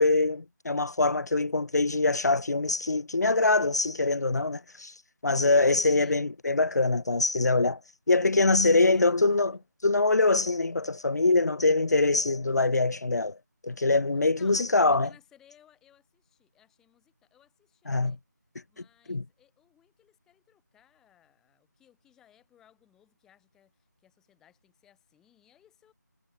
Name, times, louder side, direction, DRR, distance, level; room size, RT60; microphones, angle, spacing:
voice 1, 0.0-4.9 5.2-7.8 8.1-9.5 9.8-13.4 13.6-15.1 17.9-18.2 19.1-19.2, left 3 dB, 65° left, 0.7 m, -24 dB
voice 2, 5.8-6.2 8.8-9.6 14.1-18.2 18.7-25.9, left 10 dB, 5° left, 5.0 m, -61 dB
figure-of-eight pair, 165°, 10 cm